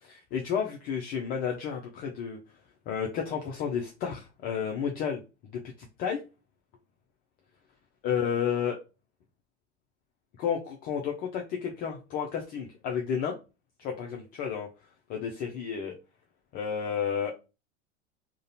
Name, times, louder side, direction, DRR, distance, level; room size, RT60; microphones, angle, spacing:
voice 1, 0.0-2.4 2.9-5.2 5.5-6.2 8.0-8.8 10.4-13.3 13.8-14.7 15.1-15.9 16.5-17.3, left 7 dB, 25° left, 1 dB, 0.3 m, -31 dB
2.4 x 2.1 x 2.7 m, 0.29 s
figure-of-eight pair, 85°, 35 cm